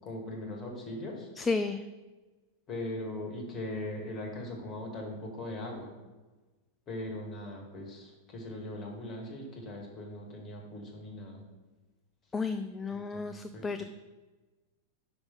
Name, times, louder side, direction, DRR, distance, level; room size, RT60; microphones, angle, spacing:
voice 1, 0.0-1.3 2.7-5.9 6.9-11.4 12.9-13.8, left 1 dB, 30° left, 1 dB, 1.8 m, -40 dB
voice 2, 1.4-1.8 12.3-13.8, left 4 dB, 15° left, 9 dB, 0.4 m, -32 dB
5.4 x 5.3 x 5.7 m, 1.2 s
figure-of-eight pair, 90°, 0 cm